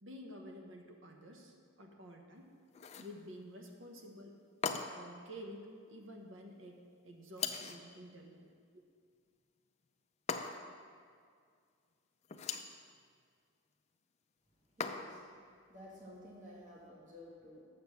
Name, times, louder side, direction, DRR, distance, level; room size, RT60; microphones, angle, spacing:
voice 1, 0.0-2.5 3.0-4.3 4.9-8.9, equal, 65° right, 2 dB, 1.1 m, -51 dB
sound 1, 2.7-3.2 4.6-5.1 7.4-7.9 10.3-10.8 12.2-12.8 14.8-15.3, left 5 dB, 30° left, 0.4 m, -39 dB
voice 2, 14.8-15.2 15.7-17.6, left 1 dB, 35° right, -5 dB, 1.8 m, -52 dB
6.9 x 6.7 x 6.8 m, 2.1 s
head